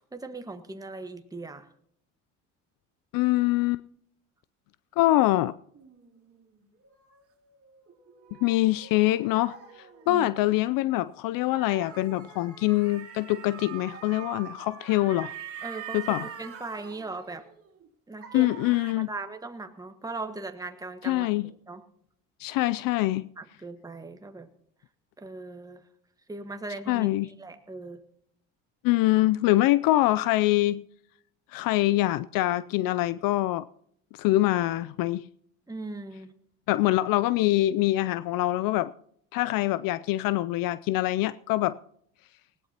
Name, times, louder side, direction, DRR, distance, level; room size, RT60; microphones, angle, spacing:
voice 1, 0.1-1.7 10.1-10.3 15.6-17.4 18.1-21.8 23.4-24.5 25.2-25.8 26.3-28.0 35.7-36.3, right 3 dB, 10° right, 1.4 m, -39 dB
voice 2, 3.1-3.8 5.0-5.5 8.4-9.6 10.1-15.3 15.9-16.2 18.3-19.1 21.0-21.5 22.4-23.3 26.9-27.3 28.8-30.8 31.5-33.6 34.1-35.2 36.7-38.9 39.3-41.8, left 17 dB, 65° left, 0.5 m, -24 dB
sound 1, 5.7-10.5 11.3-17.9 18.2-18.9, right 9 dB, 40° right, 3.1 m, -44 dB
20.0 x 16.0 x 2.9 m
hypercardioid pair, 70°, 37 cm